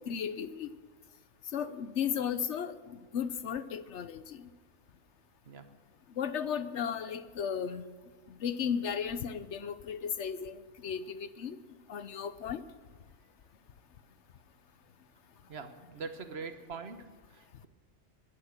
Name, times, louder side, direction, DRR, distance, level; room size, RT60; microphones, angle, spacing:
voice 1, 0.1-0.7 1.5-4.5 6.2-7.8 8.3-11.6 11.9-12.6, left 7 dB, 65° left, 13 dB, 1.1 m, -35 dB
voice 2, 15.5-17.7, right 4 dB, 55° right, 8 dB, 1.4 m, -43 dB
20.5 x 10.5 x 6.6 m, 1.4 s
omnidirectional pair, 1.4 m